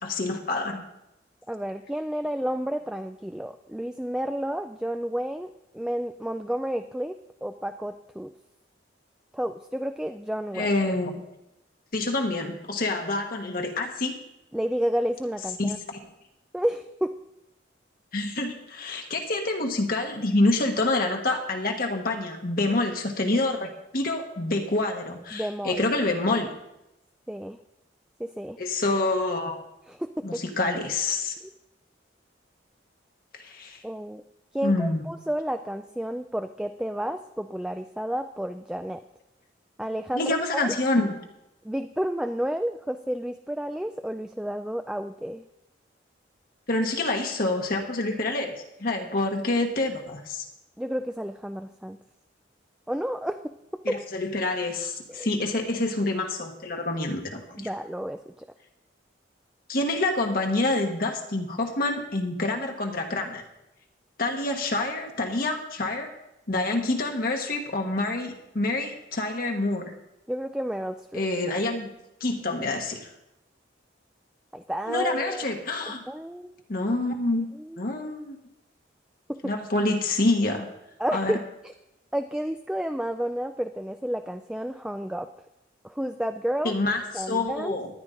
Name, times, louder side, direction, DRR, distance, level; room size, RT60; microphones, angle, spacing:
voice 1, 0.0-0.8 10.5-11.2 11.9-14.2 15.6-16.0 18.1-26.5 28.6-29.6 30.2-31.3 33.3-33.8 34.6-35.0 40.1-41.2 46.7-48.5 48.8-50.4 53.8-57.7 59.7-63.4 64.2-66.1 66.5-69.9 71.1-71.9 72.2-73.1 74.9-76.0 76.7-77.5 77.8-78.4 79.4-80.7 81.1-81.3 86.6-87.9, left 2 dB, 50° left, 2 dB, 1.2 m, -27 dB
voice 2, 1.5-8.3 9.3-10.7 14.5-15.8 16.5-17.2 25.3-25.9 27.3-27.6 28.2-28.6 29.9-30.4 33.8-34.2 34.5-39.0 39.8-40.8 41.6-45.4 50.8-52.0 52.9-53.4 53.9-54.0 55.1-55.3 57.6-58.5 70.3-71.3 74.5-75.5 76.1-76.5 77.3-77.8 79.3-79.5 81.0-81.7 82.1-85.3 85.8-86.7 87.1-87.8, equal, 5° right, 7 dB, 0.3 m, -31 dB
14.0 x 10.5 x 3.8 m, 0.87 s
head